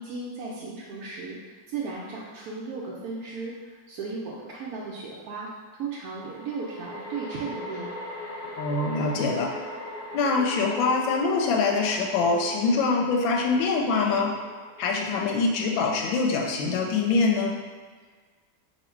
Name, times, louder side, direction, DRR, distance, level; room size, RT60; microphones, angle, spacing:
voice 1, 0.0-3.5 3.9-5.5 5.8-8.0, right 4 dB, 75° right, -5 dB, 0.8 m, -35 dB
sound 1, 3.2-3.3 6.2-17.5, left 1 dB, 65° left, 0.9 m, -40 dB
voice 2, 8.6-9.5 10.1-14.3 14.8-17.6, left 4 dB, 90° left, 1 dB, 1.3 m, -24 dB
3.1 x 2.7 x 4.3 m, 1.5 s
omnidirectional pair, 2.1 m